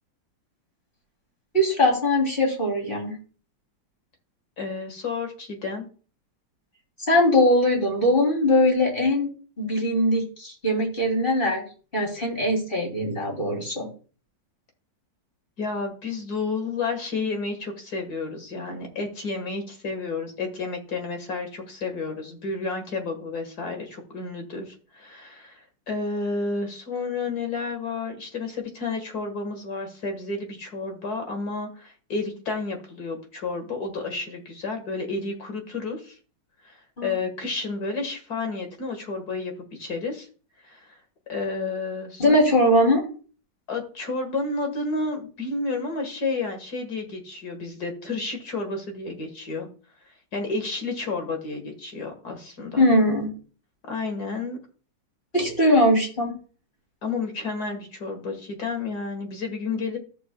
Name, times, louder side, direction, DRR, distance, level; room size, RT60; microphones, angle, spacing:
voice 1, 1.5-3.1 7.1-9.3 9.6-11.6 11.9-13.9 37.0-37.1 42.2-43.0 52.8-53.3 55.3-56.3, left 1 dB, 30° left, 0 dB, 3.2 m, -21 dB
voice 2, 4.6-5.8 15.6-36.2 36.6-36.7 37.0-40.3 40.6-41.0 41.3-42.7 43.7-49.7 50.3-52.8 53.9-54.6 57.0-60.0, left 3 dB, 55° left, 4 dB, 2.2 m, -31 dB
14.0 x 6.7 x 2.3 m, 0.40 s
omnidirectional pair, 2.0 m